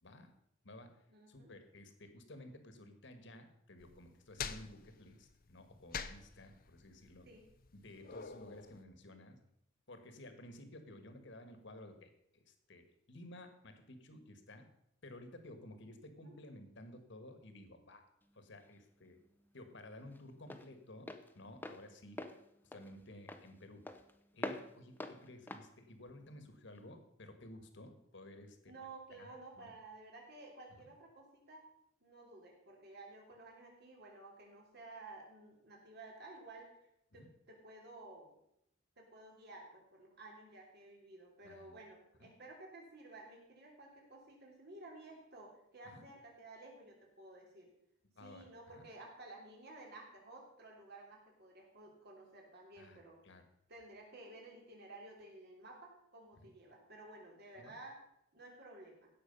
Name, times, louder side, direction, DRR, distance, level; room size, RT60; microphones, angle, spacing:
voice 1, 0.0-0.3 0.6-7.3 7.7-9.4 9.9-14.7 15.0-18.0 18.3-19.2 19.5-22.2 22.6-23.9 24.3-28.7 29.1-29.7 30.8-30.9 37.2-37.3 41.4-41.8 42.2-42.3 45.8-46.1 48.1-48.8 52.8-53.4 56.3-56.5 57.5-57.7, left 1 dB, 65° left, 8 dB, 1.6 m, -54 dB
voice 2, 1.1-1.5 7.2-7.4 16.1-16.4 28.7-31.7 32.0-36.9 37.1-38.3 39.0-47.7 48.2-53.2 53.7-58.0 58.3-59.1, right 2 dB, 55° right, -1 dB, 3.4 m, -54 dB
sound 1, 3.8-8.8, left 6 dB, 50° left, 0.7 m, -47 dB
Walk footsteps, 18.2-26.9, left 1 dB, 10° left, 0.8 m, -48 dB
16.5 x 6.5 x 5.4 m, 0.77 s
head